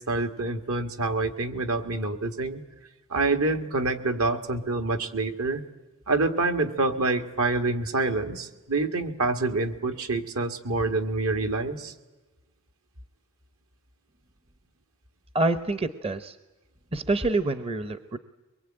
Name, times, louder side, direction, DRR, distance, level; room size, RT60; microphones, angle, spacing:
voice 1, 0.0-2.6 3.1-5.6 6.1-11.9, right 3 dB, 70° right, 7 dB, 1.9 m, -27 dB
voice 2, 15.3-16.4 16.9-18.2, right 2 dB, 25° right, 10 dB, 0.8 m, -26 dB
23.5 x 22.5 x 8.9 m, 1.2 s
head